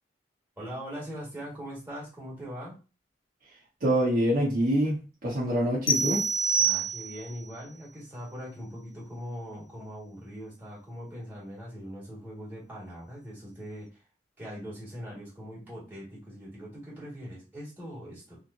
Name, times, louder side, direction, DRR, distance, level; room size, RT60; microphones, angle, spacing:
voice 1, 0.6-2.8 6.6-14.0 14.4-18.4, equal, 10° right, -5 dB, 1.9 m, -41 dB
voice 2, 3.8-6.2, right 1 dB, 50° right, -5 dB, 1.3 m, -25 dB
sound 1, 5.9-7.4, right 3 dB, 30° left, 0.4 m, -26 dB
3.6 x 3.0 x 2.7 m, 0.33 s
head